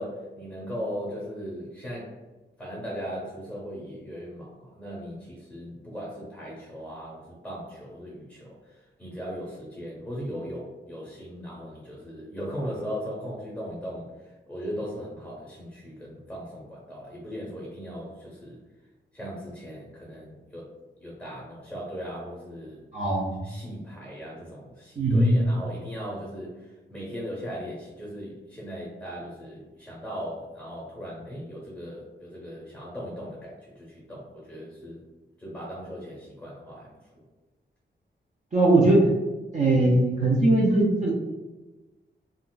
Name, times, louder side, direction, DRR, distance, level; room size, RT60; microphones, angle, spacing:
voice 1, 0.0-2.1 2.6-18.6 19.1-20.7 21.0-22.8 23.4-35.0 35.4-36.9, equal, 5° left, -5 dB, 0.7 m, -38 dB
voice 2, 22.9-23.5 25.0-25.4 38.5-39.1 39.5-41.1, right 2 dB, 40° right, -4 dB, 0.5 m, -20 dB
2.4 x 2.2 x 3.8 m, 1.2 s
wide cardioid pair, 150°, 19 cm